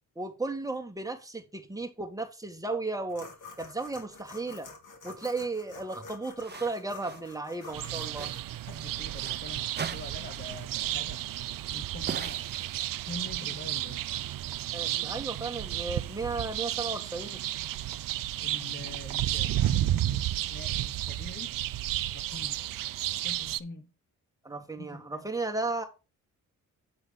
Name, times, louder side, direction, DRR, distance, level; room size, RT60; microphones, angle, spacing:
voice 1, 0.2-3.3 3.6-4.7 5.0-8.3 14.7-17.4 24.4-25.8, right 3 dB, 10° right, 1.8 m, -34 dB
sound 1, 3.1-8.4, left 3 dB, 60° left, 3.0 m, -48 dB
sound 2, 5.2-5.5 6.4-7.3 7.6-9.4 9.8-10.5 10.8-11.0 12.1-13.2, right 6 dB, 30° right, 0.7 m, -42 dB
sound 3, 7.7-23.6, right 14 dB, 65° right, 0.6 m, -32 dB
voice 2, 8.7-11.3 11.7-12.5 13.1-14.0 15.0-15.2 18.4-21.5 22.1-22.6 23.2-23.9 24.8-25.2, left 3 dB, 30° left, 1.0 m, -44 dB
8.6 x 3.9 x 5.1 m
cardioid pair, 70°, 35 cm